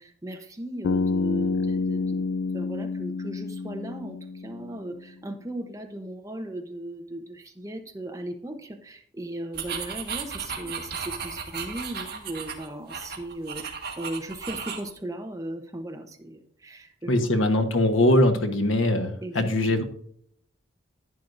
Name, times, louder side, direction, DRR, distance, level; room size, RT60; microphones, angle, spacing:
voice 1, 0.0-2.3 2.5-17.2 19.2-19.8, right 1 dB, 15° right, 5 dB, 0.9 m, -37 dB
Bass guitar, 0.8-4.9, left 4 dB, 65° left, 0.4 m, -28 dB
sound 1, 9.5-14.9, right 6 dB, 50° right, 1.7 m, -35 dB
voice 2, 17.1-19.8, left 1 dB, 80° left, 7 dB, 1.2 m, -22 dB
11.0 x 9.4 x 2.6 m, 0.65 s
head